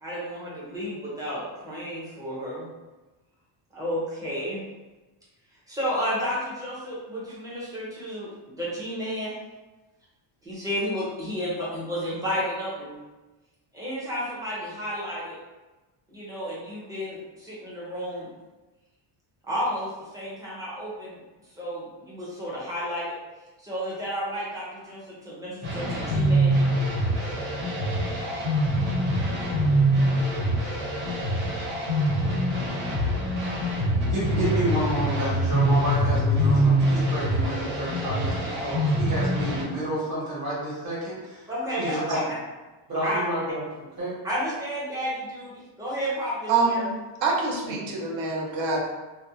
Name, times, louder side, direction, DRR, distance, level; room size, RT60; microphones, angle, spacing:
voice 1, 0.0-2.7 3.7-4.6 5.7-9.4 10.4-12.9 13.7-15.3 16.1-18.3 19.4-21.1 21.5-23.2 23.6-26.6 41.5-41.9 43.0-43.2 44.2-46.8, equal, 10° right, -7 dB, 0.4 m, -32 dB
sound 1, 25.6-39.6, equal, 90° right, 1.3 m, -24 dB
voice 2, 34.0-41.5 41.8-42.3 42.9-43.6 44.0-44.2 47.6-47.7, right 1 dB, 50° right, -9 dB, 1.0 m, -30 dB
voice 3, 46.5-48.8, right 4 dB, 70° right, -1 dB, 0.7 m, -25 dB
2.4 x 2.0 x 2.6 m, 1.1 s
cardioid pair, 180°, 47 cm